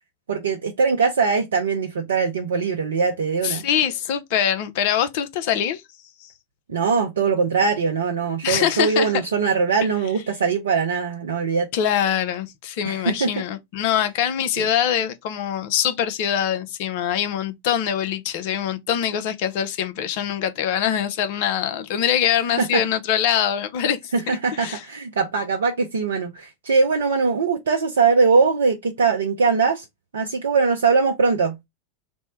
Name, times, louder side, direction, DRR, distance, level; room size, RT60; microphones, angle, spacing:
voice 1, 0.3-3.6 6.7-11.7 12.8-13.3 14.6-14.7 22.6-22.8 24.1-29.8 30.1-31.6, right 5 dB, 70° right, 0.5 m, -21 dB
voice 2, 3.4-5.8 6.2-6.3 8.4-9.1 11.7-24.0 24.3-24.8, left 9 dB, 55° left, 0.5 m, -23 dB
3.5 x 2.1 x 4.0 m
figure-of-eight pair, 90°, 0 cm